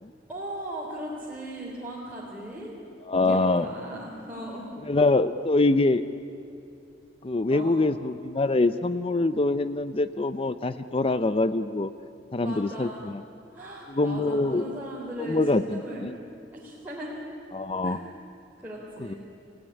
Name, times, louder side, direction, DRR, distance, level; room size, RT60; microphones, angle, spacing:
voice 1, 0.3-2.7 3.3-4.7 7.5-7.7 12.4-13.0 13.5-16.1 16.5-17.2 17.8-18.0 18.6-19.2, right 1 dB, 10° right, -6 dB, 3.7 m, -38 dB
voice 2, 3.1-3.7 4.9-6.0 7.2-11.9 12.3-13.2 13.9-14.6 15.2-16.2 17.5-18.0 19.0-19.1, left 2 dB, 30° left, 12 dB, 0.5 m, -24 dB
29.5 x 16.5 x 10.0 m, 2.7 s
head